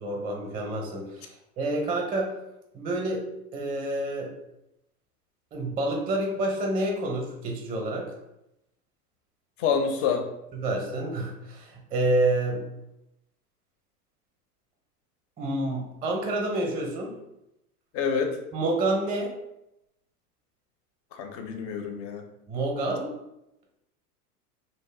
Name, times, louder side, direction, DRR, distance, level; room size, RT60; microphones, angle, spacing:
voice 1, 0.0-2.3 2.7-3.2 3.5-4.3 5.5-8.1 10.5-12.6 15.4-17.1 18.5-19.3 22.5-23.1, right 2 dB, 20° right, 1 dB, 0.6 m, -28 dB
voice 2, 9.6-10.3 17.9-18.4 21.1-22.2, left 6 dB, 30° left, 4 dB, 0.4 m, -27 dB
2.7 x 2.1 x 3.1 m, 0.86 s
hypercardioid pair, 100°, 47 cm